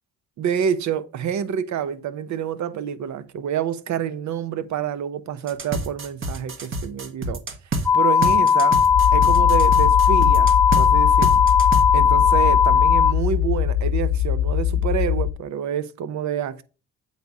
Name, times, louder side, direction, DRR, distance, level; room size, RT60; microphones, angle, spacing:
voice 1, 0.4-7.4 7.9-8.8 9.1-11.4 11.9-16.6, right 8 dB, 65° right, 0.8 m, -27 dB
sound 1, 5.5-7.9 8.2-10.9 11.2-11.8, right 2 dB, 40° right, 1.4 m, -28 dB
sound 2, 7.9-13.1, left 7 dB, 10° left, 0.5 m, -17 dB
sound 3, 8.9-15.3, left 11 dB, 75° left, 0.8 m, -22 dB
8.2 x 4.1 x 4.7 m
cardioid pair, 90°, 30 cm